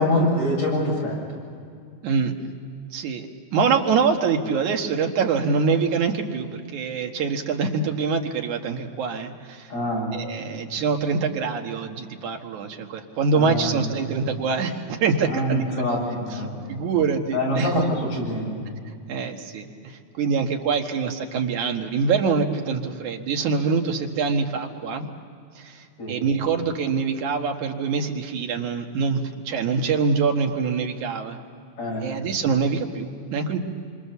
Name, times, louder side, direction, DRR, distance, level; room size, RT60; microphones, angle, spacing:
voice 1, 0.0-1.4 9.7-10.1 13.3-13.9 15.2-16.7 17.3-18.6 26.0-26.2 31.8-32.0, left 1 dB, 65° left, -3 dB, 8.8 m, -25 dB
voice 2, 2.0-2.5 2.9-3.3 3.5-9.7 10.1-15.8 16.3-17.8 19.1-25.1 25.6-31.4 32.0-33.6, right 5 dB, 80° right, 3 dB, 3.1 m, -25 dB
27.5 x 25.5 x 7.0 m, 2.3 s
omnidirectional pair, 3.4 m